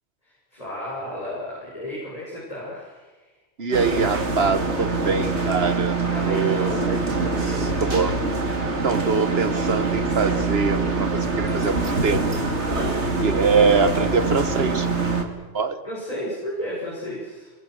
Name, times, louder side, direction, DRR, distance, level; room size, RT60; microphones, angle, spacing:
voice 1, 0.2-3.1 6.1-6.9 7.2-7.8 12.7-13.0 15.8-17.5, equal, 35° left, -6 dB, 7.0 m, -33 dB
voice 2, 3.6-6.0 6.2-6.9 7.8-8.2 8.8-12.4 13.2-14.9 15.5-15.8, right 4 dB, 60° right, 11 dB, 1.6 m, -23 dB
sound 1, 3.7-15.2, right 3 dB, 80° right, 2.8 m, -24 dB
26.5 x 22.0 x 6.5 m, 1.2 s
omnidirectional pair, 1.2 m